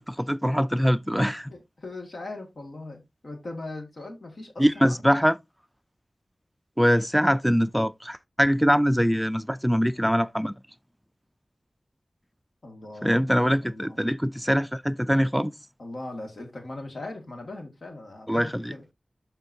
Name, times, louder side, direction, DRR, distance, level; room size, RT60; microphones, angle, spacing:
voice 1, 0.0-1.5 4.6-5.4 6.8-10.6 13.0-15.5 18.3-18.7, equal, ahead, 0.3 m, -23 dB
voice 2, 1.2-5.0 12.6-13.2 13.6-14.0 15.8-18.8, left 2 dB, 70° left, 1.9 m, -39 dB
12.5 x 4.5 x 2.7 m
wide cardioid pair, 80°, 0 cm